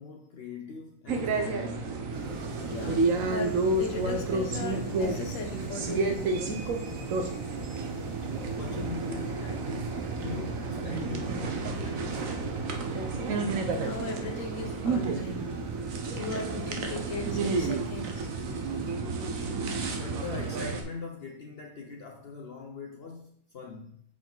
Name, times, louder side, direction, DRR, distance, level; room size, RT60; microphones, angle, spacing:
voice 1, 0.0-1.9 7.0-7.1 8.5-12.4 19.1-19.3 19.9-24.0, left 4 dB, 55° left, 1 dB, 0.8 m, -42 dB
sound 1, 1.1-20.8, right 3 dB, 75° right, 1.3 m, -31 dB
sound 2, 2.1-18.9, equal, 20° right, 1.1 m, -44 dB
voice 2, 2.6-6.7 13.7-15.5 16.1-18.3, left 3 dB, 70° left, 4 dB, 1.4 m, -38 dB
7.2 x 4.6 x 3.9 m, 0.65 s
omnidirectional pair, 1.4 m